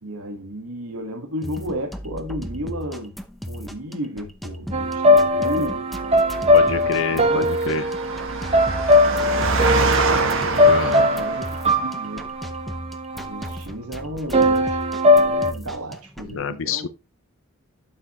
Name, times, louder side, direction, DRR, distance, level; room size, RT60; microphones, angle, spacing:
voice 1, 0.0-3.1 3.5-5.8 6.3-7.4 9.0-10.6 11.0-11.5 11.8-12.2 13.1-14.8 15.2-16.9, equal, 90° right, 1.6 m, -33 dB
sound 1, 1.4-16.3, equal, ahead, 0.7 m, -37 dB
sound 2, 4.7-13.6 14.3-15.5, left 1 dB, 30° right, 1.1 m, -20 dB
Engine, 6.2-11.9, right 3 dB, 65° right, 1.8 m, -26 dB
voice 2, 6.5-7.9 10.6-11.1 16.3-16.9, left 5 dB, 60° left, 0.7 m, -27 dB
12.0 x 5.8 x 3.0 m
head